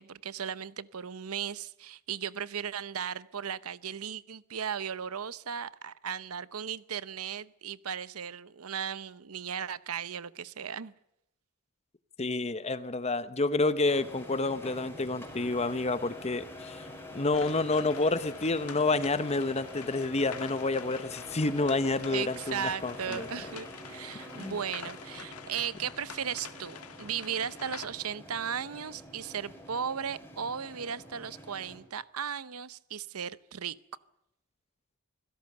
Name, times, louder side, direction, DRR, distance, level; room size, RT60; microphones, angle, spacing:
voice 1, 0.0-10.9 22.1-33.8, right 7 dB, 80° right, 0.8 m, -36 dB
voice 2, 12.2-16.9 17.1-23.3 24.3-24.6, left 3 dB, 30° left, 0.9 m, -29 dB
sound 1, 13.8-31.8, left 1 dB, 10° left, 5.0 m, -46 dB
sound 2, 17.3-27.9, left 6 dB, 90° left, 1.8 m, -47 dB
25.0 x 17.0 x 6.7 m
head